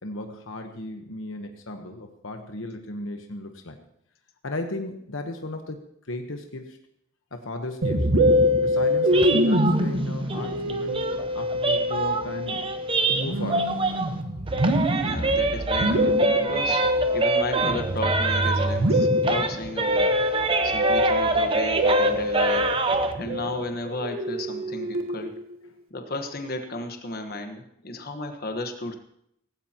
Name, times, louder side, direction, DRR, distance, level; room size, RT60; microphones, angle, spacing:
voice 1, 0.0-3.8 4.4-6.8 7.3-8.1 8.6-11.1 11.3-12.7 13.1-13.8, left 2 dB, 70° left, 4 dB, 1.1 m, -35 dB
Musical instrument, 7.8-25.4, left 1 dB, 80° right, 1.4 m, -25 dB
sound 1, 9.1-14.2 14.5-19.0 19.2-23.1, right 3 dB, 25° right, 0.8 m, -26 dB
voice 2, 14.9-16.8 17.1-20.1 20.6-22.7 23.1-25.3 25.9-28.9, left 2 dB, 45° left, 5 dB, 1.4 m, -34 dB
17.5 x 16.0 x 3.0 m, 0.74 s
head